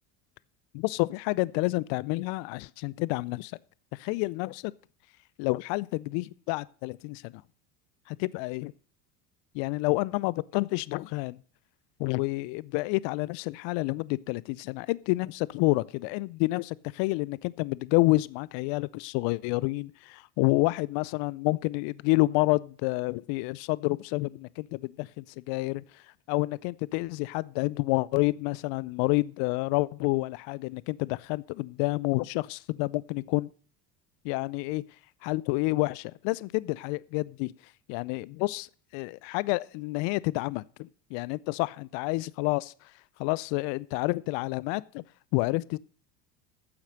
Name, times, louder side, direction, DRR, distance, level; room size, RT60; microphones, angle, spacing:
voice 1, 0.7-3.5 3.9-4.7 5.4-7.4 8.1-8.7 9.5-11.4 12.0-25.8 26.3-33.5 34.2-34.8 35.2-37.5 37.9-38.7 38.9-42.7 43.2-45.0 45.3-45.8, left 22 dB, 60° left, 0.6 m, -29 dB
11.0 x 7.3 x 6.5 m
hypercardioid pair, 80°, 50 cm